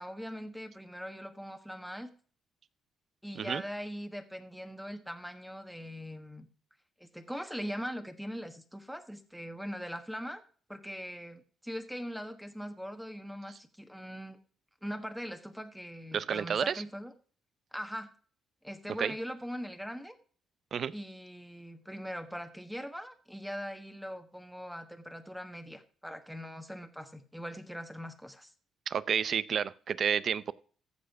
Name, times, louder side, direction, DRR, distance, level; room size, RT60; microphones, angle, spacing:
voice 1, 0.0-2.1 3.2-6.5 7.0-10.4 10.7-14.4 14.8-17.1 17.7-18.1 18.6-20.2 20.9-28.5, equal, ahead, 7 dB, 1.3 m, -41 dB
voice 2, 16.1-16.8 19.0-19.1 20.7-20.9 28.9-30.5, right 7 dB, 55° right, 18 dB, 0.5 m, -30 dB
14.5 x 5.1 x 5.9 m, 0.44 s
cardioid pair, 90°, 0 cm